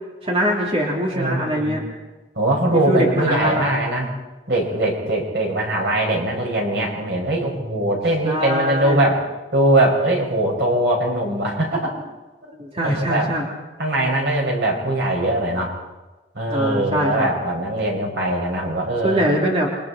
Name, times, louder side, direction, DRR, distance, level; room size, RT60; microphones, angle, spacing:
voice 1, 0.2-1.8 2.9-3.7 8.2-9.1 12.6-13.5 16.5-17.3 19.0-19.7, equal, 35° right, -2 dB, 3.4 m, -22 dB
voice 2, 1.1-1.8 2.4-4.1 4.5-9.2 9.5-11.9 12.8-13.2 13.8-15.8 16.3-19.2, right 1 dB, 80° right, 0 dB, 6.0 m, -21 dB
28.5 x 24.0 x 4.4 m, 1.2 s
head